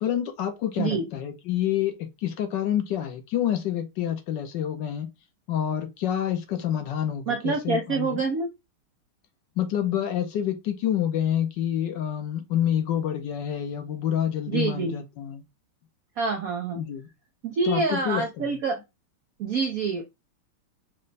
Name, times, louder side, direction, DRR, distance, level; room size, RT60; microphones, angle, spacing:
voice 1, 0.0-5.1 5.5-8.2 9.6-15.4 16.8-17.1 17.6-18.4, left 10 dB, 65° left, 1.1 m, -28 dB
voice 2, 7.3-8.5 14.5-14.9 16.2-16.8 17.4-18.8 19.4-20.0, right 4 dB, 80° right, 0.7 m, -26 dB
5.3 x 2.2 x 3.9 m
omnidirectional pair, 2.4 m